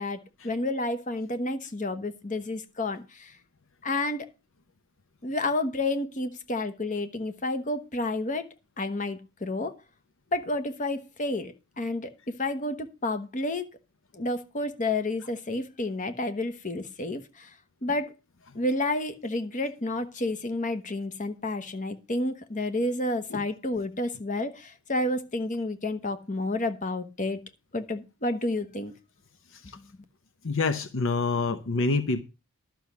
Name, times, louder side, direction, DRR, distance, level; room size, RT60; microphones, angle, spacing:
voice 1, 0.0-3.3 3.8-4.3 5.2-8.5 8.8-9.7 10.3-12.1 12.4-13.7 14.1-17.5 17.8-18.1 18.5-27.4 27.7-28.9, left 2 dB, 35° left, 1.1 m, -30 dB
voice 2, 30.4-32.2, left 3 dB, 60° left, 0.8 m, -27 dB
12.0 x 6.2 x 6.9 m
head